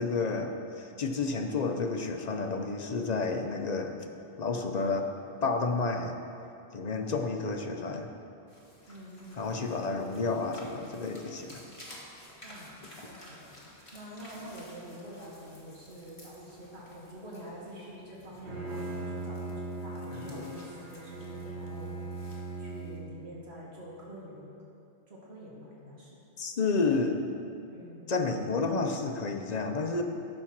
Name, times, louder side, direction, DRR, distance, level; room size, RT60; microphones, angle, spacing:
voice 1, 0.0-3.9 4.4-5.1 5.4-6.2 6.7-8.1 9.4-11.6 26.4-27.2 28.1-30.0, left 3 dB, 45° left, 4 dB, 0.7 m, -30 dB
voice 2, 6.9-7.2 8.9-9.5 12.4-13.5 13.9-21.9 22.6-24.5 25.1-26.2 27.7-28.1, equal, 85° right, -5 dB, 2.0 m, -46 dB
sound 1, 8.5-23.0, left 1 dB, 30° left, 1.6 m, -52 dB
Bowed string instrument, 18.2-23.3, right 2 dB, 65° right, 2.6 m, -39 dB
12.5 x 4.4 x 5.9 m, 2.6 s
omnidirectional pair, 1.1 m